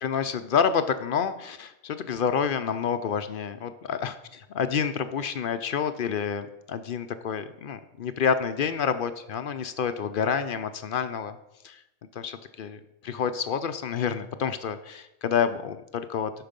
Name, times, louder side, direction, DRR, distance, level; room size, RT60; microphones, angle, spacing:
voice 1, 0.0-4.1 4.5-11.4 11.6-11.8 12.2-16.3, left 7 dB, 60° left, 10 dB, 0.6 m, -28 dB
12.5 x 4.8 x 5.2 m, 0.88 s
omnidirectional pair, 1.4 m